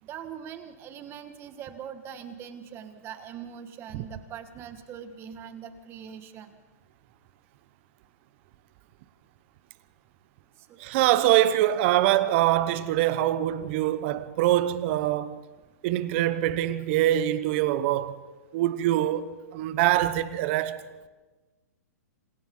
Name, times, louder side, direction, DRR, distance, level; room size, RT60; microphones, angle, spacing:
voice 1, 0.0-6.6 10.7-10.8, right 8 dB, 25° right, 2.1 m, -42 dB
voice 2, 10.8-15.4 15.8-18.2 18.5-20.8, right 13 dB, 45° right, 1.1 m, -24 dB
27.0 x 27.0 x 4.0 m
hypercardioid pair, 135°, 9 cm